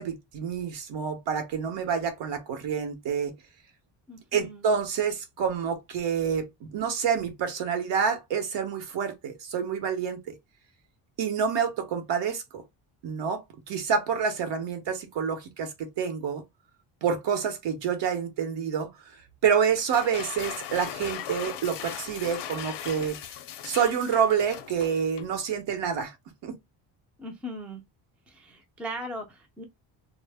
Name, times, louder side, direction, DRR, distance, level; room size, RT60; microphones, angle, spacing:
voice 1, 0.0-3.3 4.3-10.3 11.2-12.6 13.0-16.4 17.0-18.9 19.4-23.2 23.6-26.1 26.4-26.6, right 7 dB, 60° right, 0.9 m, -28 dB
voice 2, 4.1-4.7 27.2-27.8 28.3-29.6, equal, 5° right, 0.4 m, -38 dB
sound 1, 19.8-25.4, left 10 dB, 60° left, 0.6 m, -38 dB
2.1 x 2.0 x 3.4 m
cardioid pair, 130°, 48 cm